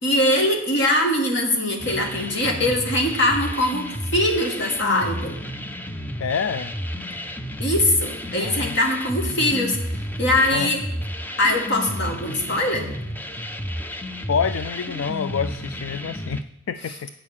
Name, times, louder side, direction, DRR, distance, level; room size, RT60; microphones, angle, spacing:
voice 1, 0.0-5.4 7.6-10.8 11.4-12.9, left 1 dB, 60° left, 1 dB, 1.9 m, -22 dB
sound 1, 1.8-16.4, equal, 10° left, 0.5 m, -31 dB
voice 2, 6.2-6.7 8.4-8.8 10.5-10.7 14.3-17.1, left 6 dB, 80° left, 12 dB, 0.4 m, -27 dB
8.9 x 6.4 x 7.3 m, 0.77 s
head